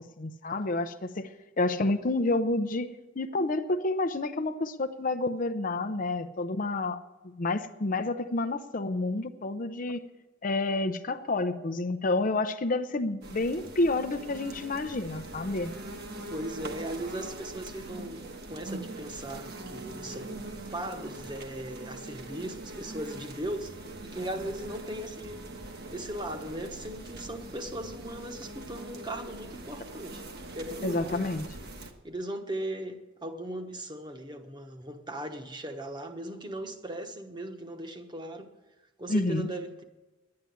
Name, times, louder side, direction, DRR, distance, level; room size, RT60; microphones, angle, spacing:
voice 1, 0.2-1.3 1.6-2.9 3.2-7.0 7.4-10.0 10.4-15.7 30.8-31.5 39.1-39.5, left 2 dB, 45° left, 0.6 m, -29 dB
sound 1, 13.2-31.9, right 2 dB, 55° right, 1.4 m, -42 dB
voice 2, 16.3-20.4 20.7-25.4 25.9-30.2 30.5-31.4 32.0-38.5 39.0-39.8, right 1 dB, 25° right, 1.1 m, -38 dB
11.0 x 9.6 x 9.3 m
head